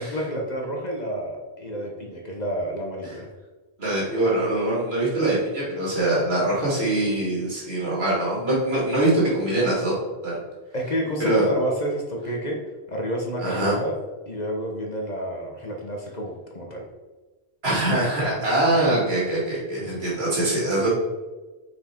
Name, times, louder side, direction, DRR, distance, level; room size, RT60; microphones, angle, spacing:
voice 1, 0.0-3.3 10.7-12.6 12.9-14.0 14.3-16.8 19.7-20.2, equal, 45° left, 0 dB, 1.1 m, -30 dB
voice 2, 3.8-9.9 10.2-10.4 11.2-11.4 13.4-13.7 17.6-20.9, right 1 dB, 80° right, -6 dB, 2.7 m, -23 dB
5.9 x 4.7 x 4.4 m, 1.2 s
omnidirectional pair, 1.1 m